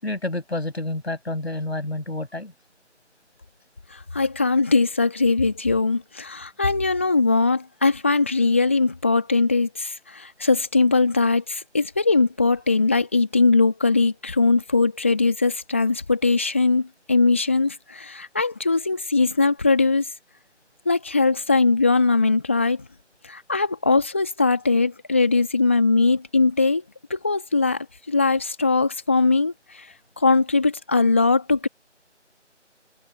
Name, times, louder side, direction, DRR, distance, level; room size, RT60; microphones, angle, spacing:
voice 1, 0.0-2.5, left 2 dB, 60° left, 6.9 m, -29 dB
voice 2, 3.9-20.1 20.9-22.9 23.2-26.8 27.1-29.9 30.2-31.7, left 3 dB, 10° left, 2.0 m, -21 dB
figure-of-eight pair, 170°, 36 cm